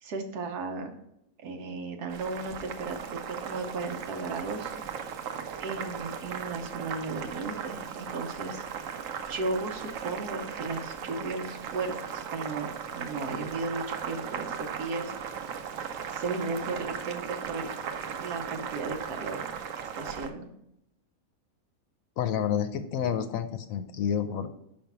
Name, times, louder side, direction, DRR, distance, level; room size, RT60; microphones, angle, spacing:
voice 1, 0.0-1.0 1.4-4.7 5.6-9.0 9.3-15.1 16.1-17.7 18.1-19.5 19.7-20.5, right 3 dB, 85° right, 4 dB, 1.4 m, -35 dB
Boiling, 2.1-20.3, right 7 dB, 65° right, 1.0 m, -37 dB
voice 2, 22.2-24.5, left 8 dB, 70° left, 9 dB, 1.0 m, -29 dB
5.6 x 5.3 x 5.7 m, 0.81 s
omnidirectional pair, 1.6 m